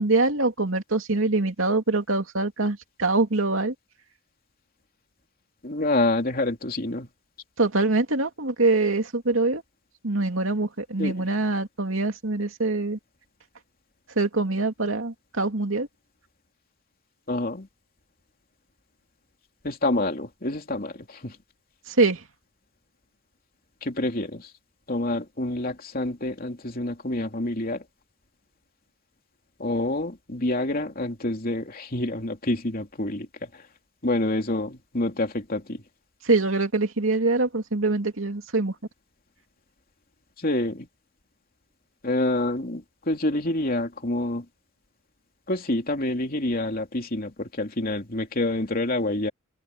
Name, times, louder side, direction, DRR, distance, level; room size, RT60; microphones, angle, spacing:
voice 1, 0.0-3.7 7.6-9.6 10.0-13.0 14.2-15.9 21.9-22.2 36.3-38.7, right 3 dB, 80° right, 2.6 m, -24 dB
voice 2, 5.6-7.1 11.0-11.2 17.3-17.7 19.6-20.9 21.2-21.3 23.8-24.5 24.9-27.8 29.6-33.3 34.0-35.8 40.4-40.9 42.0-44.4 45.5-49.3, left 2 dB, 45° left, 3.1 m, -27 dB
open air
head